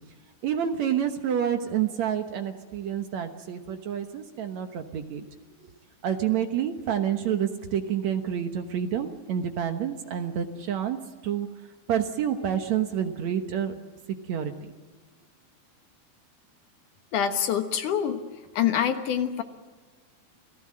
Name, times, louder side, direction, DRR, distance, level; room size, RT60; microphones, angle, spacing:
voice 1, 0.4-5.2 6.0-11.0 11.2-11.5 11.9-13.7 14.3-14.7, right 9 dB, 60° right, 7 dB, 2.0 m, -28 dB
voice 2, 17.1-18.2 18.5-19.4, left 9 dB, 65° left, 7 dB, 2.5 m, -25 dB
28.0 x 18.0 x 7.6 m, 1.4 s
omnidirectional pair, 4.4 m